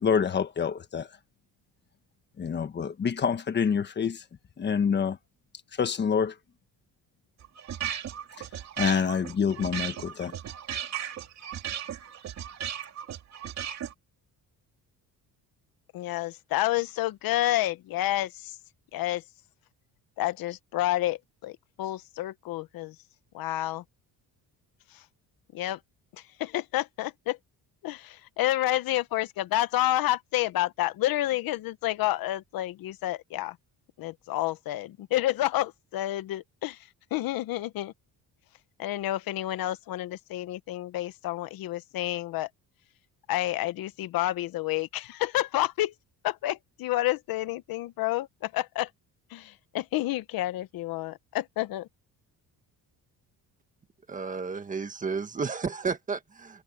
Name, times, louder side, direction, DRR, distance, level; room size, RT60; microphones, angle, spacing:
voice 1, 0.0-1.1 2.4-4.2 4.6-5.2 5.8-6.3 8.8-10.3, left 6 dB, 30° left, 1.3 m, -26 dB
sound 1, 7.4-13.9, right 9 dB, 45° right, 2.3 m, -36 dB
voice 2, 15.9-18.6 18.9-19.2 20.2-22.9 23.3-23.8 25.5-25.8 26.4-27.4 27.8-33.5 34.0-36.8 37.1-37.9 38.8-42.5 43.3-45.9 46.2-48.9 49.3-51.9, left 15 dB, 65° left, 0.9 m, -29 dB
voice 3, 54.1-56.6, right 5 dB, 20° right, 1.7 m, -32 dB
cardioid pair, 175°, 38 cm